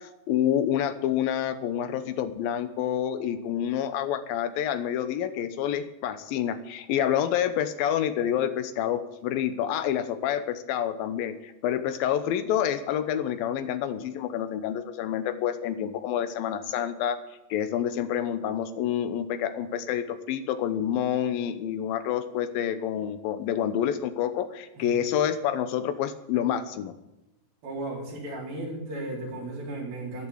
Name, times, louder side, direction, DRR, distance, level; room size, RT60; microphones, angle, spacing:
voice 1, 0.0-17.2 17.5-27.0, left 10 dB, 85° left, 11 dB, 2.8 m, -28 dB
voice 2, 27.6-30.3, right 2 dB, 90° right, -2 dB, 5.8 m, -35 dB
12.0 x 11.5 x 8.4 m, 0.95 s
omnidirectional pair, 4.1 m